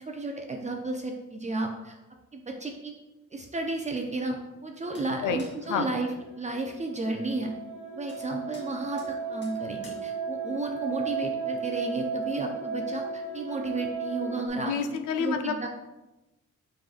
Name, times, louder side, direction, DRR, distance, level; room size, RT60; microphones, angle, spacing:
voice 1, 0.1-2.0 2.3-2.9 3.3-6.1 6.4-7.5 7.9-15.7, right 2 dB, 25° right, 2 dB, 0.5 m, -33 dB
sound 1, 4.9-5.1 5.4-5.6 8.1-8.2 8.5-8.7 9.0-9.1 9.4-9.6 9.8-10.0, left 2 dB, 35° left, 1.1 m, -51 dB
sound 2, 6.1-14.5, right 5 dB, 85° right, 1.2 m, -35 dB
voice 2, 14.5-15.7, left 6 dB, 85° left, 7 dB, 0.5 m, -29 dB
4.6 x 3.8 x 2.4 m, 1.0 s
cardioid pair, 90°, 30 cm